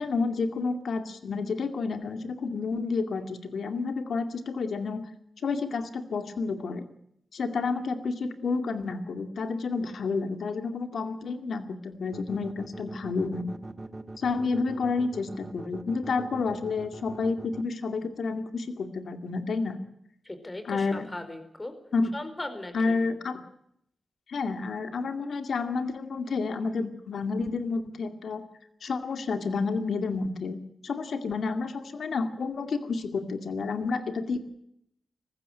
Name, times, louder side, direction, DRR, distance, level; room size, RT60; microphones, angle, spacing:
voice 1, 0.0-5.0 5.4-6.9 7.3-13.6 14.2-19.8 20.6-21.1 21.9-22.1 22.7-23.4 24.3-28.4 28.8-30.6 30.8-34.4, left 4 dB, 80° left, 8 dB, 2.3 m, -30 dB
sound 1, 12.1-17.6, right 2 dB, 25° right, 1.7 m, -41 dB
voice 2, 20.2-21.7 22.1-23.0, left 2 dB, 25° left, 9 dB, 4.5 m, -38 dB
20.0 x 15.5 x 9.1 m, 0.74 s
cardioid pair, 65°, 0 cm